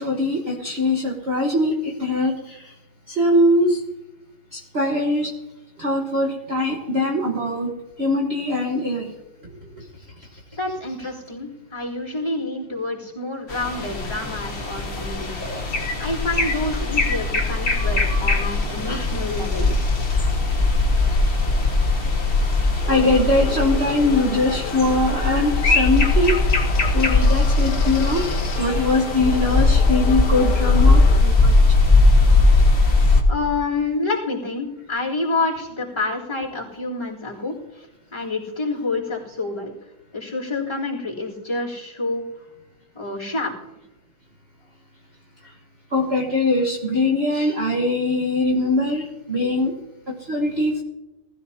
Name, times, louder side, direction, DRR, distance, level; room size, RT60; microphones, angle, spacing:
voice 1, 0.0-2.6 3.1-3.8 4.5-5.3 5.8-7.7 8.0-9.1 15.4-15.7 18.8-19.1 22.9-26.4 26.9-31.5 45.9-49.7 50.1-50.8, left 1 dB, 35° right, -1 dB, 1.5 m, -22 dB
voice 2, 10.6-15.4 16.0-19.7 33.3-37.9 38.1-39.7 40.1-42.2 43.0-43.5, left 3 dB, 15° left, -8 dB, 3.6 m, -28 dB
sound 1, 13.5-33.2, left 3 dB, 35° left, 1.2 m, -19 dB
sound 2, 22.8-31.2, left 9 dB, 85° left, 1.6 m, -35 dB
20.0 x 14.0 x 2.9 m, 0.98 s
omnidirectional pair, 2.2 m